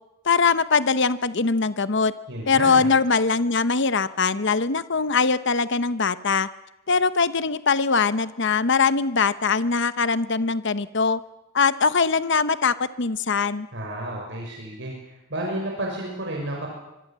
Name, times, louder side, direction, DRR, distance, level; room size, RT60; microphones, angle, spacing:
voice 1, 0.2-2.1 2.5-6.5 6.9-11.2 11.5-13.7, left 4 dB, 60° left, 14 dB, 0.9 m, -22 dB
voice 2, 2.3-2.9 13.7-16.7, right 1 dB, 60° right, -1 dB, 6.1 m, -31 dB
25.5 x 23.5 x 7.5 m, 0.93 s
head